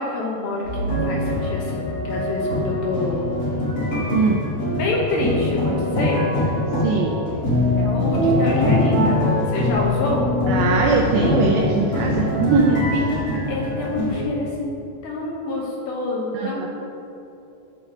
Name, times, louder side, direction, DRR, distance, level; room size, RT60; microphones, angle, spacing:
voice 1, 0.0-3.3 4.8-6.3 7.8-10.3 12.9-14.8 15.0-16.7, left 2 dB, 70° left, -2 dB, 2.5 m, -27 dB
sound 1, 0.6-14.3, left 1 dB, 40° left, 2.2 m, -23 dB
voice 2, 6.8-7.2 10.5-12.8 16.3-16.7, right 4 dB, 85° right, 0 dB, 2.1 m, -20 dB
11.5 x 3.9 x 6.0 m, 2.9 s
omnidirectional pair, 5.0 m